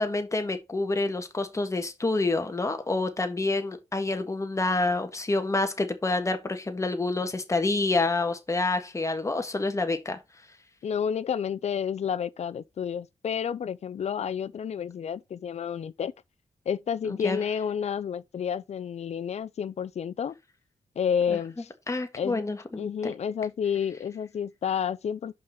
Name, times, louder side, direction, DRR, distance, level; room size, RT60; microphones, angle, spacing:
voice 1, 0.0-10.2 17.0-17.4 21.3-21.4 21.9-23.1, left 2 dB, 25° left, 1.6 m, -28 dB
voice 2, 10.8-16.1 16.7-20.3 21.0-21.7 22.2-22.4 22.8-25.3, left 7 dB, 65° left, 0.6 m, -30 dB
5.5 x 5.1 x 5.7 m
cardioid pair, 90°, 12 cm